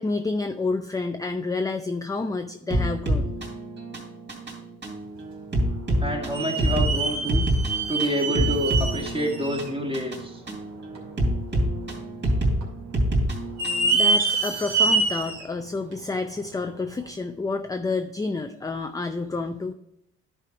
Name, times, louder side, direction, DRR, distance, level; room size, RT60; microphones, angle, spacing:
voice 1, 0.0-3.3 13.9-19.7, left 3 dB, 10° left, 7 dB, 0.4 m, -29 dB
sound 1, 2.7-13.9, right 1 dB, 35° right, 2.8 m, -27 dB
sound 2, 5.5-5.6 6.3-9.7 10.2-10.3 10.9-11.0 11.9-12.4 12.6-12.7 13.4-15.4 15.9-16.0 16.9-17.0, right 3 dB, 65° right, 2.5 m, -25 dB
voice 2, 6.0-7.4 7.9-10.4, equal, 20° right, 0 dB, 2.0 m, -28 dB
10.5 x 4.2 x 4.7 m, 0.78 s
cardioid pair, 90°, 30 cm